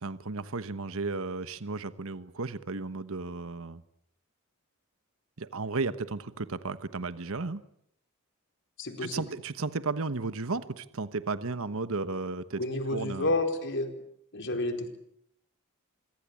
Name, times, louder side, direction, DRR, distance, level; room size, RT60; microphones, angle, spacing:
voice 1, 0.0-3.8 5.4-7.6 9.0-12.6 12.9-13.3, right 3 dB, 65° right, 13 dB, 1.1 m, -34 dB
voice 2, 8.8-9.2 12.6-13.9 14.3-15.0, left 2 dB, 55° left, 6 dB, 4.4 m, -30 dB
26.0 x 23.0 x 8.5 m, 0.71 s
head